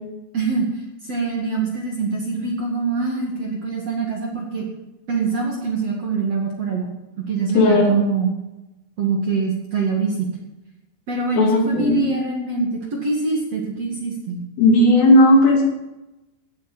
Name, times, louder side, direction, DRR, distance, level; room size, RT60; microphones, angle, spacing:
voice 1, 0.3-0.7 1.0-4.7 5.1-6.9 7.3-8.3 9.0-10.3 11.1-14.4, right 4 dB, 45° right, -1 dB, 2.3 m, -24 dB
voice 2, 7.5-8.1 11.4-12.1 14.6-15.6, left 1 dB, 90° left, 0 dB, 5.6 m, -15 dB
16.5 x 8.3 x 7.6 m, 0.97 s
omnidirectional pair, 5.6 m